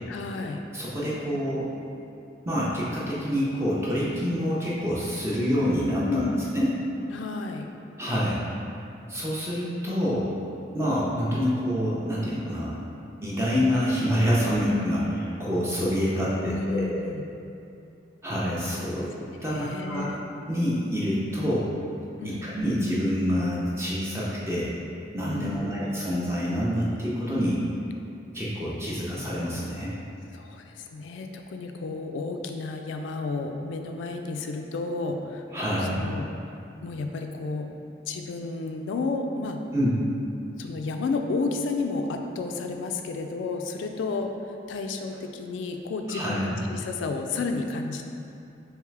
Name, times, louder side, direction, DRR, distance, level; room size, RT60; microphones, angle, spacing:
voice 1, 0.1-0.6 4.1-4.2 6.1-6.4 7.1-7.7 16.5-17.2 19.5-20.2 22.2-22.5 25.3-25.8 30.3-36.3 36.8-37.7 38.1-39.6 40.6-44.3 44.7-48.1, left 3 dB, 80° left, 5 dB, 0.3 m, -32 dB
voice 2, 0.7-1.7 2.5-6.2 6.5-6.7 8.0-8.4 9.1-10.3 10.7-12.7 13.2-17.1 18.2-19.1 19.4-20.1 20.5-21.7 22.4-24.7 25.1-27.6 28.3-29.9 35.5-36.1 39.7-40.0 46.1-46.6, equal, 15° right, -7 dB, 0.5 m, -27 dB
3.6 x 3.2 x 3.2 m, 2.6 s
head